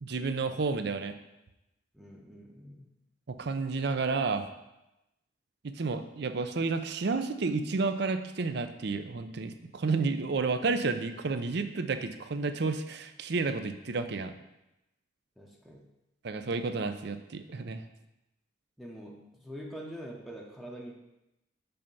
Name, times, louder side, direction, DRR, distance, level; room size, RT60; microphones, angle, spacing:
voice 1, 0.0-1.1 3.3-4.5 5.6-14.3 16.2-17.9, right 4 dB, 60° right, 9 dB, 0.5 m, -31 dB
voice 2, 1.9-2.9 15.4-15.9 18.8-20.9, equal, ahead, -2 dB, 0.7 m, -45 dB
5.6 x 5.5 x 5.4 m, 0.92 s
head